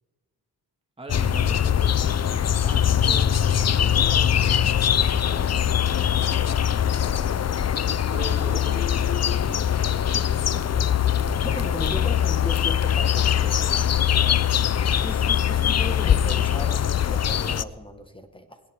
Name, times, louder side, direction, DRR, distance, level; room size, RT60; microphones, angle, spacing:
voice 1, 1.0-7.3 8.1-9.8 10.1-10.8 14.2-14.5, right 2 dB, 15° right, 3 dB, 1.8 m, -42 dB
sound 1, 1.1-17.6, left 9 dB, 40° left, 0.5 m, -22 dB
voice 2, 11.4-13.8 15.0-18.6, left 1 dB, 10° left, 7 dB, 1.6 m, -36 dB
20.0 x 17.0 x 3.7 m, 1.2 s
cardioid pair, 80°, 41 cm